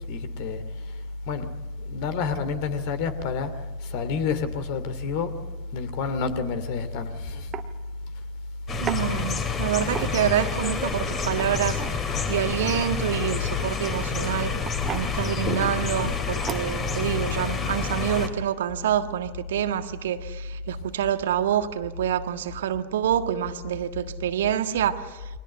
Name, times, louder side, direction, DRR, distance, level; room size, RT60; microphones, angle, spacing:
voice 1, 0.1-0.6 1.3-1.5 1.9-3.5 3.9-5.3 5.7-7.5, left 5 dB, 45° left, 2.8 m, -29 dB
sound 1, 6.8-7.0 7.5-7.7 8.9-9.0 9.8-10.4 11.3-12.0 13.6-13.9 14.6-15.1 16.0-16.1 16.4-16.9, right 9 dB, 25° right, 1.6 m, -34 dB
sound 2, 8.7-18.3, left 5 dB, 25° left, 3.5 m, -28 dB
voice 2, 8.8-12.0 12.3-14.6 14.9-25.2, right 10 dB, 60° right, 1.6 m, -27 dB
30.0 x 24.0 x 8.0 m
figure-of-eight pair, 90°, 0 cm